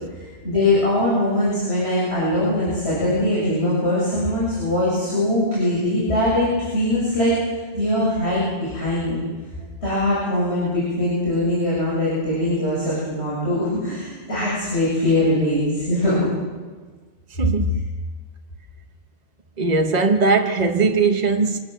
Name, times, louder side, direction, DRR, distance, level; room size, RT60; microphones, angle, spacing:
voice 1, 0.1-9.2 9.8-16.3, left 1 dB, 75° left, -8 dB, 7.7 m, -22 dB
voice 2, 17.4-17.8 19.6-21.6, right 4 dB, 40° right, 4 dB, 1.3 m, -19 dB
26.0 x 13.0 x 7.9 m, 1.4 s
omnidirectional pair, 1.1 m